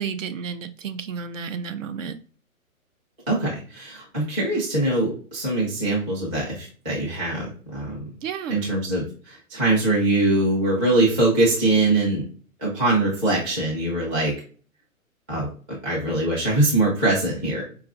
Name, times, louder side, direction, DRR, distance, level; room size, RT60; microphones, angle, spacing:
voice 1, 0.0-2.2 8.2-8.7, right 6 dB, 60° right, 10 dB, 0.5 m, -31 dB
voice 2, 3.3-8.0 8.5-12.2 12.6-14.3 15.3-15.5 15.8-17.6, right 2 dB, 5° right, -7 dB, 0.4 m, -22 dB
4.6 x 2.4 x 2.4 m, 0.40 s
hypercardioid pair, 140°, 43 cm